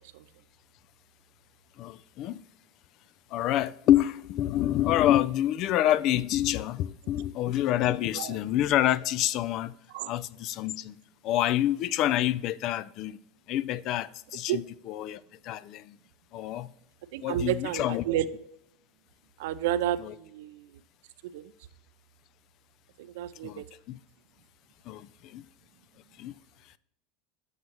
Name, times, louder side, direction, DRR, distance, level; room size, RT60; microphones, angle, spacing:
voice 1, 1.8-2.4 3.3-9.7 10.0-13.2 13.5-16.0 16.3-16.7 17.2-18.1 20.0-20.1 23.4-24.0 24.9-25.4 26.2-26.3, left 13 dB, 55° left, 0.4 m, -27 dB
voice 2, 17.1-18.4 19.4-20.7 21.3-21.5 23.0-23.6, right 11 dB, 75° right, 0.4 m, -31 dB
7.3 x 6.3 x 3.0 m
supercardioid pair, 100°, 0 cm